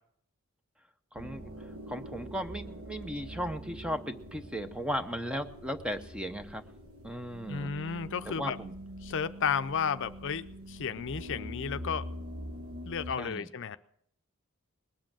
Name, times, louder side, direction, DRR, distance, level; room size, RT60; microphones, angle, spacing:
voice 1, 1.1-6.6 7.0-7.7 8.3-8.7 13.2-13.5, equal, 5° right, 8 dB, 0.7 m, -36 dB
sound 1, 1.1-13.1, equal, 65° right, 1.4 m, -44 dB
voice 2, 7.5-8.6 9.0-12.1 12.9-13.8, left 6 dB, 60° left, 11 dB, 0.5 m, -33 dB
20.0 x 7.6 x 7.4 m, 0.68 s
head